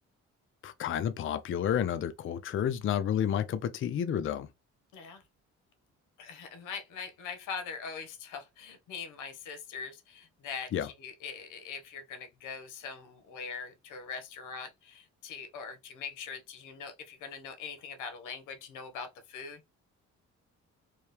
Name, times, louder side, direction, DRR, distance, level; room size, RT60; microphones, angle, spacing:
voice 1, 0.6-4.5 10.7-10.9, left 9 dB, 45° left, 0.4 m, -30 dB
voice 2, 4.9-5.2 6.2-19.6, left 6 dB, 90° left, 0.9 m, -42 dB
3.1 x 2.7 x 3.3 m
cardioid pair, 90°, 30 cm